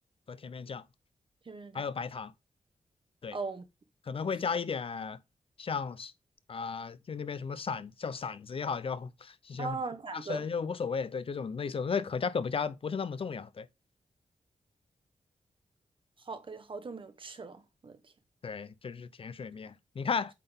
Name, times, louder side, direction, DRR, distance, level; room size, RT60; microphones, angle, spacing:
voice 1, 0.3-0.8 1.7-2.3 3.2-3.4 4.1-5.2 5.6-6.1 6.5-9.8 10.1-13.7 18.4-20.3, left 5 dB, 50° left, 0.5 m, -35 dB
voice 2, 1.5-1.9 3.3-3.6 9.6-10.4 16.3-18.0, right 4 dB, 45° right, 1.0 m, -39 dB
8.4 x 3.8 x 3.4 m
wide cardioid pair, 100°, 12 cm